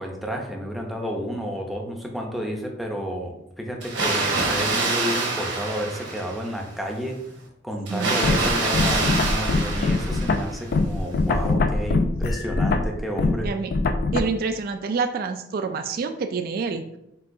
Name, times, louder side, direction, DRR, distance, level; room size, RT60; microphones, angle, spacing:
voice 1, 0.0-7.3 7.6-13.5, equal, ahead, 0 dB, 0.5 m, -31 dB
Water, 3.8-6.6 7.9-10.7, right 3 dB, 70° right, 1.1 m, -26 dB
voice 2, 7.9-8.2 13.4-13.7 14.1-16.8, right 4 dB, 50° right, 7 dB, 0.3 m, -27 dB
sound 1, 8.2-14.2, left 3 dB, 55° left, 0.3 m, -23 dB
4.5 x 3.7 x 2.5 m, 0.81 s
head